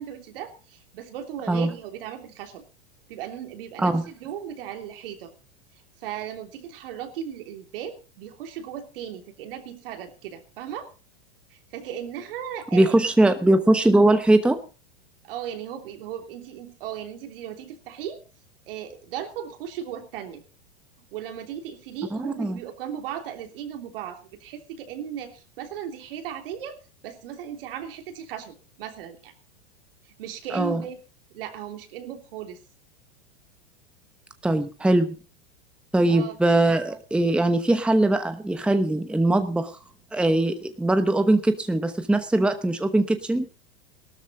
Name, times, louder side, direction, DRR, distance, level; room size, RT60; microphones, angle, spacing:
voice 1, 0.0-2.6 3.1-5.3 6.0-10.9 11.5-13.0 15.2-18.2 18.7-20.4 21.1-26.8 27.0-29.3 30.2-31.0 31.3-32.6 36.1-36.4, right 9 dB, 65° right, 5 dB, 3.2 m, -36 dB
voice 2, 12.7-14.6 22.2-22.6 30.5-30.8 34.4-35.1 35.9-39.7 40.1-43.5, right 2 dB, 5° right, 8 dB, 1.0 m, -21 dB
17.0 x 13.0 x 4.0 m, 0.34 s
hypercardioid pair, 120°, 30 cm